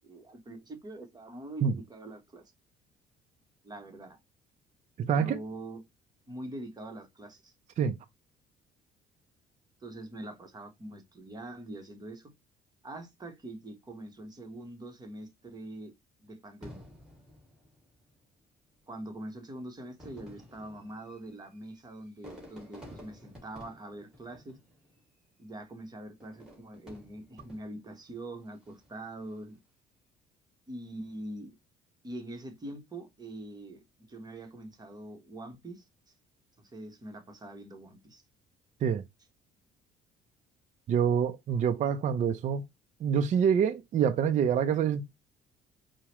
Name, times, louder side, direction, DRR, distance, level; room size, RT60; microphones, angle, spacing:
voice 1, 0.0-2.4 3.6-4.2 5.1-5.8 6.3-7.5 9.8-12.3 12.8-15.9 16.2-16.9 18.9-24.6 25.4-29.6 30.7-31.5 32.0-36.1 36.6-38.2, right 1 dB, 25° right, 1.0 m, -44 dB
voice 2, 5.0-5.4 7.8-8.0 38.8-39.0 40.9-42.6 43.0-45.0, right 7 dB, 45° right, 0.5 m, -26 dB
Fireworks, 16.6-18.2 19.1-19.2 19.9-25.1 26.2-28.0 28.5-29.0, left 1 dB, 5° right, 1.9 m, -52 dB
4.7 x 2.1 x 2.9 m
cardioid pair, 110°, 17 cm